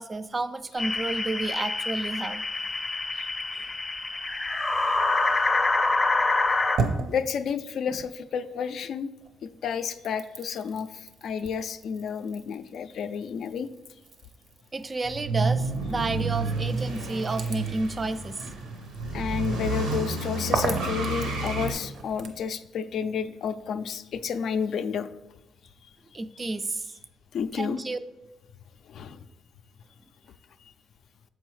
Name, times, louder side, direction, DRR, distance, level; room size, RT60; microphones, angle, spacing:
voice 1, 0.0-2.4 3.5-3.7 7.9-8.0 14.7-18.4 26.1-26.9 27.5-28.0, right 2 dB, 30° right, 12 dB, 0.3 m, -31 dB
sound 1, 0.8-6.8, left 3 dB, 25° left, 0.6 m, -26 dB
sound 2, 6.2-8.9 9.2-22.5, right 4 dB, 65° right, 0.6 m, -38 dB
voice 2, 7.1-9.1 9.4-13.7 19.1-25.1 27.3-27.8 28.9-29.2, left 6 dB, 65° left, 10 dB, 0.3 m, -31 dB
sound 3, 15.0-21.7, right 3 dB, 90° right, 1.0 m, -30 dB
6.8 x 4.5 x 3.1 m, 1.0 s
cardioid pair, 90°, 0 cm